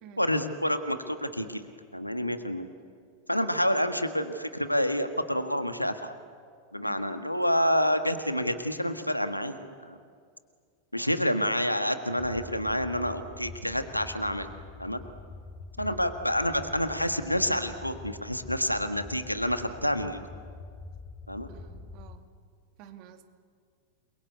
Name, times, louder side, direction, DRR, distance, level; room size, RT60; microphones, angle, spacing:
voice 1, 0.2-2.7 3.3-6.1 6.7-10.0 10.9-14.5 14.8-15.0 15.8-20.2 21.3-21.5, equal, 90° left, 9 dB, 1.6 m, -28 dB
sound 1, 12.2-22.2, left 3 dB, 10° left, 2.7 m, -45 dB
voice 2, 21.5-22.3 22.8-23.3, right 10 dB, 40° right, 6 dB, 2.3 m, -50 dB
29.0 x 23.0 x 8.3 m, 2.1 s
figure-of-eight pair, 90°, 0 cm